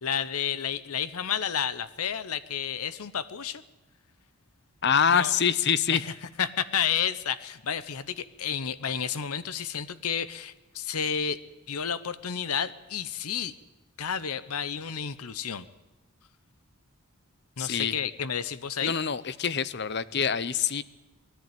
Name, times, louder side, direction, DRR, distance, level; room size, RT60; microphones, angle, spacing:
voice 1, 0.0-3.6 5.1-5.3 5.9-6.0 6.4-11.4 11.7-13.5 14.0-15.7 17.6-18.9, left 8 dB, 85° left, 15 dB, 0.8 m, -31 dB
voice 2, 4.8-6.0 17.6-17.9 18.8-20.8, left 7 dB, 50° left, 17 dB, 0.7 m, -25 dB
20.5 x 14.0 x 9.2 m, 1.1 s
head